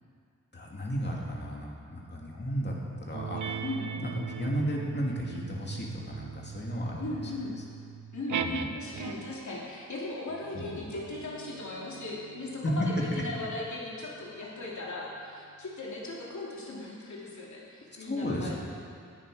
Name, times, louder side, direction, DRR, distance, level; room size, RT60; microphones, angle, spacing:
voice 1, 0.5-3.6 4.0-7.3 8.4-8.8 10.5-10.7 12.6-13.2 18.0-18.6, equal, 35° left, -2 dB, 2.5 m, -33 dB
sound 1, 3.1-9.5 10.3-15.2, right 7 dB, 75° right, 0.7 m, -41 dB
voice 2, 7.0-7.5 8.1-18.6, left 2 dB, 70° left, -5 dB, 2.9 m, -38 dB
18.0 x 11.0 x 5.0 m, 2.3 s
wide cardioid pair, 140°, 30 cm